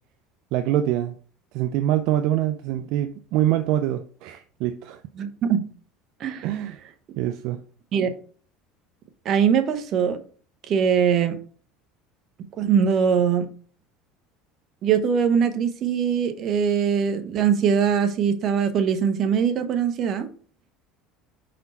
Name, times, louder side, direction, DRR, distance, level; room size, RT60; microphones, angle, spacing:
voice 1, 0.5-1.2 1.5-5.0 6.4-6.8 7.2-7.6, right 12 dB, 65° right, 0.4 m, -24 dB
voice 2, 5.2-5.6 6.2-6.5 7.9-8.1 9.2-10.2 10.7-11.4 12.5-13.5 14.8-20.3, right 7 dB, 45° right, 0.9 m, -22 dB
5.5 x 4.2 x 4.2 m
supercardioid pair, 115°, 0 cm